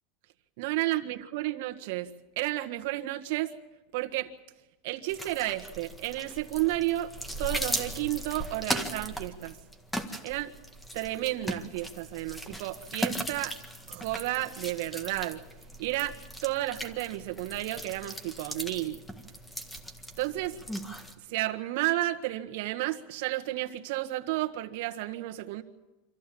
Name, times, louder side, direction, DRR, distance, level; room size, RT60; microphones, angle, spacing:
voice 1, 0.6-3.6 3.9-4.3 4.8-7.1 7.4-9.6 10.2-10.5 10.9-13.6 13.9-15.4 15.8-16.2 16.4-19.0 20.2-20.6 21.3-25.6, right 16 dB, 65° right, 6 dB, 1.6 m, -32 dB
sound 1, 5.1-21.1, equal, 5° left, 1.7 m, -38 dB
26.0 x 15.0 x 8.6 m, 1.1 s
supercardioid pair, 150°, 0 cm